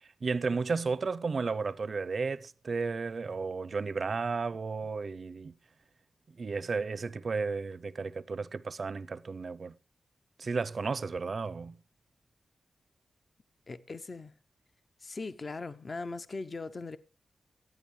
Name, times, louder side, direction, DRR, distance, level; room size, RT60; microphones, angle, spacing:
voice 1, 0.0-5.5 6.3-9.8 10.4-11.8, right 4 dB, 50° right, 0.6 m, -33 dB
voice 2, 13.7-14.3 15.0-17.0, left 3 dB, 35° left, 0.7 m, -39 dB
23.0 x 9.2 x 3.2 m
wide cardioid pair, 155°, 0 cm